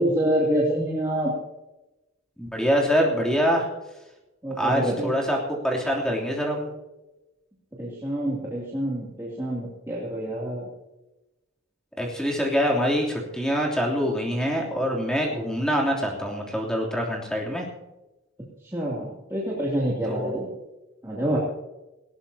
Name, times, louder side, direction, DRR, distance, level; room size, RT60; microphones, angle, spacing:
voice 1, 0.0-1.3 4.4-5.1 7.8-10.6 18.7-20.4 21.0-21.4, right 1 dB, 15° right, -6 dB, 2.8 m, -26 dB
voice 2, 2.4-3.7 4.6-5.4 5.6-6.7 12.0-17.7 20.0-20.6, equal, 5° left, -2 dB, 3.1 m, -25 dB
19.0 x 17.5 x 2.9 m, 1.0 s
head